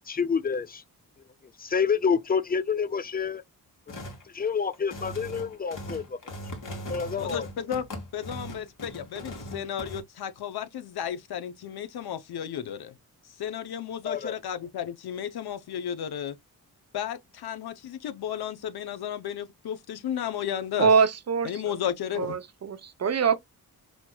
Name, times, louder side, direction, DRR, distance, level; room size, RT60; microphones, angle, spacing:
voice 1, 0.1-0.8 1.6-3.4 4.3-6.2 6.9-7.5 14.0-14.3, left 6 dB, 25° left, 0.4 m, -28 dB
sound 1, 3.9-4.2 4.7-10.0, equal, 55° left, 1.5 m, -39 dB
voice 2, 7.1-13.0 13.4-16.4 16.9-20.9 21.4-22.4, left 9 dB, 75° left, 0.7 m, -33 dB
voice 3, 20.8-21.6 22.2-23.4, right 6 dB, 45° right, 0.6 m, -23 dB
4.4 x 2.8 x 2.3 m
cardioid pair, 90°, 38 cm